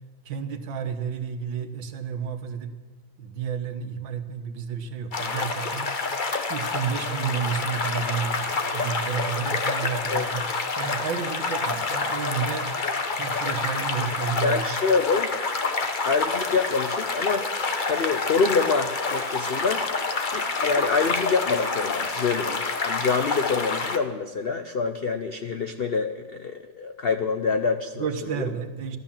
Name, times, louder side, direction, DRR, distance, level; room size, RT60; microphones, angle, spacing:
voice 1, 0.3-2.7 3.2-5.9 6.5-10.5 10.8-12.7 13.2-14.6 28.0-29.0, right 7 dB, 80° right, 8 dB, 1.9 m, -31 dB
sound 1, 5.1-24.0, left 4 dB, 35° left, 0.9 m, -28 dB
voice 2, 14.4-15.3 15.7-15.8 16.0-17.5 17.8-19.8 20.3-28.1 28.4-28.5, left 4 dB, 70° left, 7 dB, 0.5 m, -26 dB
15.0 x 12.5 x 7.4 m, 1.3 s
omnidirectional pair, 2.0 m